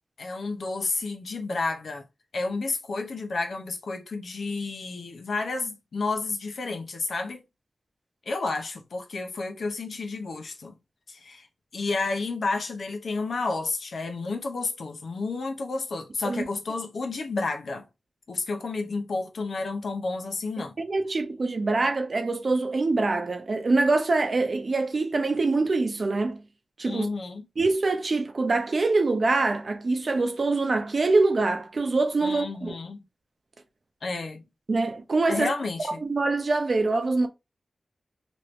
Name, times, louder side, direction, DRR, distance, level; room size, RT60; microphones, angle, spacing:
voice 1, 0.2-2.0 2.3-7.4 8.3-10.7 11.1-11.5 11.7-17.8 18.3-20.8 26.8-27.4 32.2-33.0 34.0-34.4 35.3-36.0, left 3 dB, 75° left, 0.6 m, -31 dB
voice 2, 20.6-26.4 26.8-27.1 27.6-32.7 34.7-35.5 36.0-37.3, right 3 dB, 55° right, 0.6 m, -24 dB
3.0 x 2.6 x 3.0 m
wide cardioid pair, 95°, 0 cm